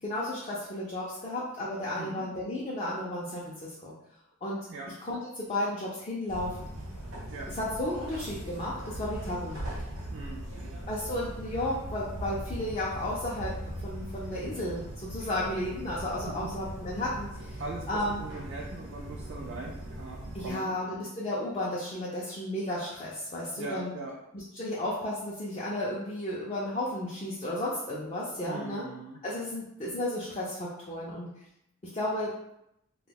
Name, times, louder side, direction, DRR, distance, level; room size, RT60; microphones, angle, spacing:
voice 1, 0.0-3.9 4.4-4.7 5.0-6.7 7.5-9.7 10.9-17.6 17.9-18.3 20.3-23.9 24.3-28.8 29.2-31.3 31.9-32.3, left 1 dB, 30° left, -6 dB, 0.4 m, -33 dB
sound 1, 6.3-20.5, right 1 dB, 85° right, 0.9 m, -40 dB
voice 2, 10.1-10.8 16.3-16.5 17.4-20.7 23.6-24.2 28.5-29.2, right 3 dB, 55° right, -1 dB, 0.3 m, -41 dB
2.2 x 2.2 x 3.3 m, 0.83 s
head